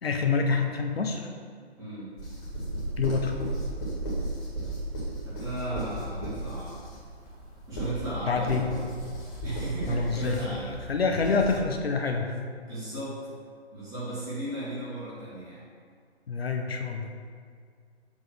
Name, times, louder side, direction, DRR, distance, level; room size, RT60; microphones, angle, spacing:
voice 1, 0.0-1.3 3.0-3.4 8.3-8.7 9.9-10.6 10.9-12.4 16.3-17.1, left 5 dB, 65° left, 4 dB, 0.7 m, -27 dB
voice 2, 1.8-2.1 5.2-6.8 7.7-8.8 9.4-10.7 12.7-13.4 13.7-15.6, right 1 dB, 10° right, -9 dB, 1.6 m, -35 dB
sound 1, 2.2-11.6, right 1 dB, 25° left, 1.8 m, -35 dB
7.2 x 3.1 x 6.1 m, 2.1 s
figure-of-eight pair, 140°, 33 cm